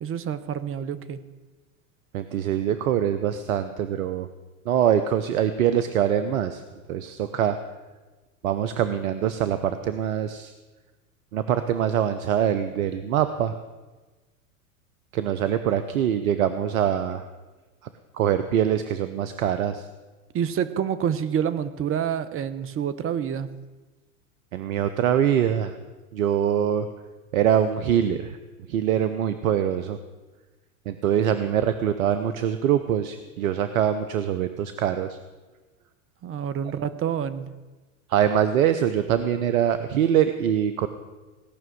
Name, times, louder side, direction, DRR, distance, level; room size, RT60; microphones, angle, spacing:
voice 1, 0.0-1.2 20.3-23.5 36.2-37.5, right 8 dB, 30° right, 13 dB, 0.9 m, -27 dB
voice 2, 2.1-4.3 4.6-6.6 6.9-7.6 8.4-10.5 11.3-13.5 15.1-17.3 18.1-19.9 24.5-25.7 26.1-26.9 27.3-28.4 28.7-30.0 30.9-35.2 38.1-40.9, right 9 dB, 75° right, 11 dB, 0.9 m, -23 dB
17.5 x 6.1 x 9.3 m, 1.2 s
hypercardioid pair, 95°, 42 cm